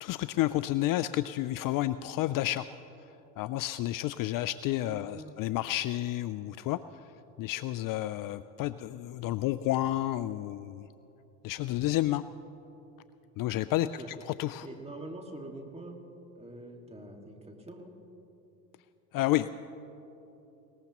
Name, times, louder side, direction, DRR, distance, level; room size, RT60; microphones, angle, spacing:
voice 1, 0.0-2.7 3.4-7.1 7.4-10.9 11.4-12.2 13.4-14.7 19.1-19.5, left 15 dB, 50° left, 14 dB, 0.4 m, -30 dB
voice 2, 4.8-5.4 13.8-14.1 14.6-16.0 16.4-17.9, right 1 dB, 15° right, 3 dB, 2.0 m, -44 dB
20.5 x 18.5 x 3.0 m, 3.0 s
supercardioid pair, 90°, 45 cm